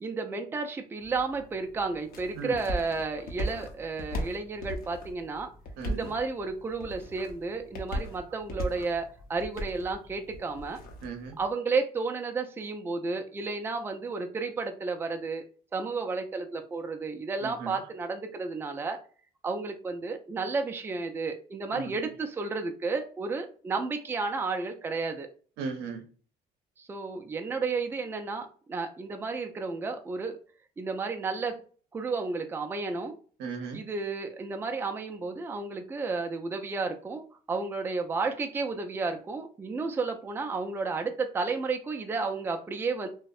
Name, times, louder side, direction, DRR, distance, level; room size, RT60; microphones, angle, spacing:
voice 1, 0.0-5.5 5.9-10.8 11.4-15.4 15.7-19.0 19.4-25.3 26.8-30.4 30.8-31.6 31.9-33.2 33.7-43.1, right 4 dB, 15° right, 4 dB, 0.3 m, -32 dB
sound 1, 1.0-11.5, equal, 60° left, 0.6 m, -39 dB
voice 2, 5.8-6.1 11.0-11.4 17.4-17.7 21.7-21.9 25.6-26.0 33.4-33.8, right 5 dB, 90° right, 5 dB, 0.6 m, -36 dB
2.6 x 2.1 x 2.3 m, 0.41 s
cardioid pair, 110°, 17 cm